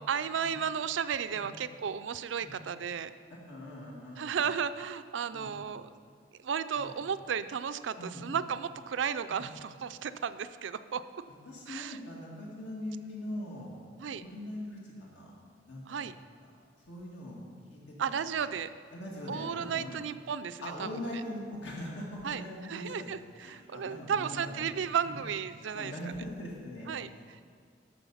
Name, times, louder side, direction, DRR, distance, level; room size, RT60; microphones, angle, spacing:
voice 1, 0.0-3.1 4.2-5.8 6.4-11.0 11.7-12.0 14.0-14.2 15.9-16.1 18.0-18.7 19.3-20.9 22.2-22.4 22.7-25.9 26.9-27.1, right 7 dB, 75° right, 13 dB, 0.4 m, -34 dB
voice 2, 3.5-4.5 5.3-5.6 6.7-7.0 8.0-8.4 9.3-9.5 11.4-13.7 14.1-15.4 15.7-16.0 16.4-16.5 16.8-17.4 17.7-18.1 18.9-20.0 20.6-23.1 23.4-24.5 25.0-25.2 25.7-27.4, left 1 dB, 70° left, -4 dB, 2.3 m, -42 dB
13.0 x 6.4 x 5.6 m, 2.1 s
head